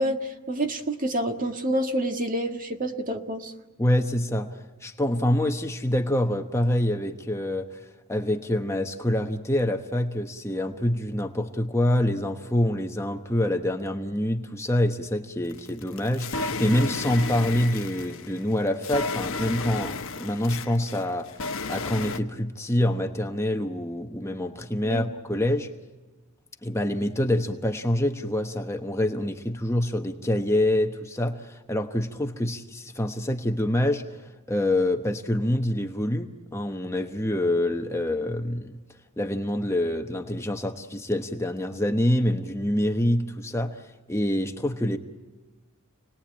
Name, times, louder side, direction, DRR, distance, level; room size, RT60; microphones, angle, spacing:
voice 1, 0.0-3.5 24.8-25.1, right 1 dB, 40° right, 5 dB, 1.7 m, -28 dB
voice 2, 3.8-7.8 8.1-21.3 21.7-25.7 26.6-34.2 34.5-38.7 39.2-45.0, left 1 dB, 15° left, 5 dB, 1.1 m, -26 dB
sound 1, 15.5-22.2, left 3 dB, 65° left, 1.1 m, -33 dB
28.5 x 20.0 x 8.7 m, 1.3 s
head